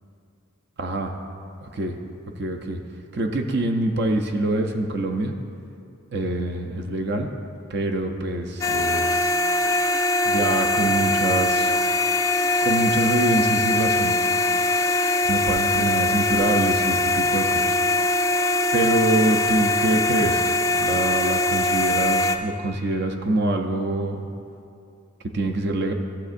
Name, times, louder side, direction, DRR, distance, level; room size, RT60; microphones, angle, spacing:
voice 1, 0.8-1.1 1.6-2.0 2.4-2.8 3.1-5.3 6.1-7.3 7.7-9.4 10.2-11.7 12.6-14.2 15.2-18.0 18.7-24.2 25.3-25.9, right 2 dB, 50° right, 5 dB, 0.5 m, -25 dB
sound 1, 8.6-22.4, left 2 dB, 15° left, 0.3 m, -22 dB
14.5 x 7.1 x 2.5 m, 2.5 s
head